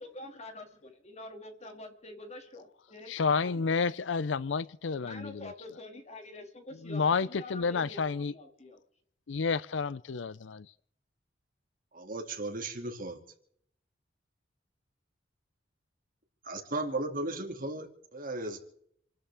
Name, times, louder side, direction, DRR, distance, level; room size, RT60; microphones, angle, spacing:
voice 1, 0.0-3.6 5.0-8.8, left 2 dB, 35° left, 2.4 m, -46 dB
voice 2, 3.1-5.5 6.8-8.3 9.3-10.7, left 5 dB, 75° left, 0.5 m, -30 dB
voice 3, 11.9-13.2 16.4-18.6, right 2 dB, 50° right, 2.5 m, -36 dB
28.0 x 12.5 x 3.6 m
head